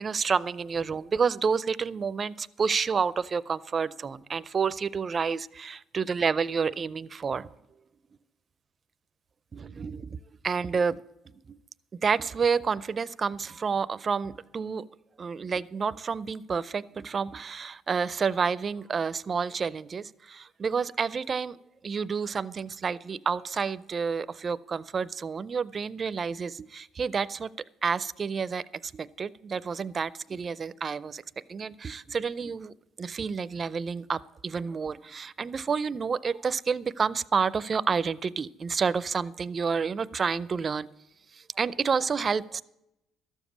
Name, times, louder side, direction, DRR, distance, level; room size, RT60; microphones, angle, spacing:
voice 1, 0.0-7.5 9.5-10.2 10.4-11.0 11.5-11.6 12.0-14.9 15.2-21.6 21.8-27.5 27.8-31.2 31.5-40.9 41.6-42.6, right 5 dB, 40° right, 18 dB, 0.4 m, -29 dB
13.0 x 7.2 x 8.4 m, 0.89 s
cardioid pair, 95°, 0 cm